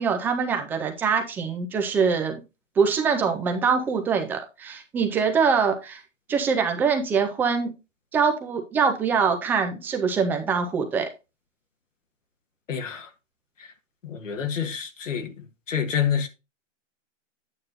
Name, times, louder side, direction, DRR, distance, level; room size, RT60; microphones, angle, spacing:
voice 1, 0.0-2.4 2.8-6.0 6.3-7.7 8.1-11.1, right 5 dB, 5° right, 0.4 m, -24 dB
voice 2, 12.7-13.1 14.0-15.3 15.7-16.3, left 8 dB, 85° left, 1.6 m, -27 dB
9.1 x 9.0 x 2.5 m
hypercardioid pair, 150°, 38 cm